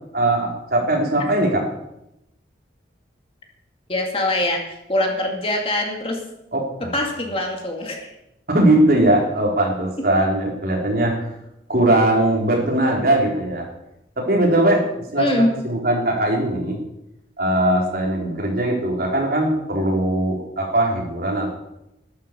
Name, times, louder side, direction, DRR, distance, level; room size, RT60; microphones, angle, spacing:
voice 1, 0.1-1.7 6.5-6.9 8.5-11.3 11.7-13.7 14.2-14.8 15.1-16.8 17.4-21.5, right 1 dB, 50° right, -1 dB, 4.1 m, -20 dB
voice 2, 3.9-6.2 6.8-8.1 15.2-15.5, left 1 dB, 30° left, 1 dB, 2.3 m, -23 dB
13.0 x 11.5 x 6.9 m, 0.84 s
head